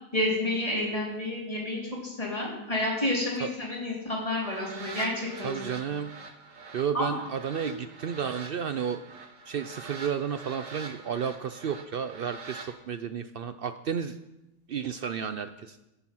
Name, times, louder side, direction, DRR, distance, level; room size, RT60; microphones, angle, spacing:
voice 1, 0.1-5.8 6.9-7.2, left 1 dB, 20° left, -3 dB, 3.9 m, -30 dB
sound 1, 4.2-12.7, right 4 dB, 55° right, 1.9 m, -44 dB
voice 2, 5.4-6.1 6.7-12.6 12.9-14.2 14.7-15.8, right 7 dB, 85° right, 10 dB, 0.5 m, -32 dB
14.0 x 9.7 x 6.1 m, 0.93 s
omnidirectional pair, 1.7 m